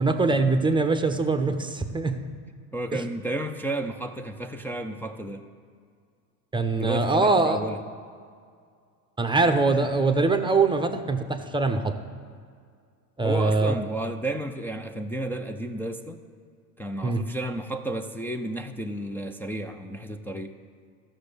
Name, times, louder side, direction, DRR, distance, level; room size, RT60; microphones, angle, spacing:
voice 1, 0.0-2.2 2.9-3.0 6.5-7.6 9.2-11.9 13.2-13.8 17.0-17.2, right 3 dB, 10° right, 6 dB, 0.7 m, -23 dB
voice 2, 2.7-5.5 6.7-7.8 13.2-16.2 16.8-20.5, right 1 dB, 5° left, 2 dB, 0.3 m, -32 dB
13.5 x 6.2 x 6.7 m, 2.2 s
supercardioid pair, 105°, 45 cm